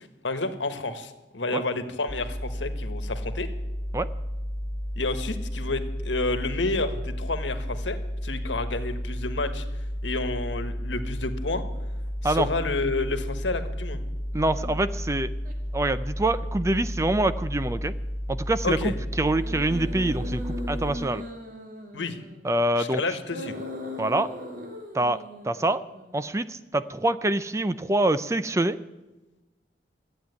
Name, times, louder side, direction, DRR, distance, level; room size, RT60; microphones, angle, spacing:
voice 1, 0.2-3.5 4.9-9.6 10.0-11.6 12.2-14.0 18.6-18.9 21.9-22.2 22.8-23.5, left 3 dB, 90° left, 9 dB, 1.4 m, -30 dB
sound 1, 2.1-20.9, equal, 25° left, 1.1 m, -32 dB
voice 2, 14.3-15.3 15.7-17.9 18.3-21.2 22.4-23.2 24.0-24.3 24.9-25.8 26.1-28.8, right 1 dB, 15° right, 13 dB, 0.5 m, -25 dB
sound 2, 14.6-14.9 15.4-15.5 19.2-22.5 23.2-26.2, left 1 dB, 50° right, 2.1 m, -38 dB
13.5 x 8.9 x 9.4 m, 1.1 s
head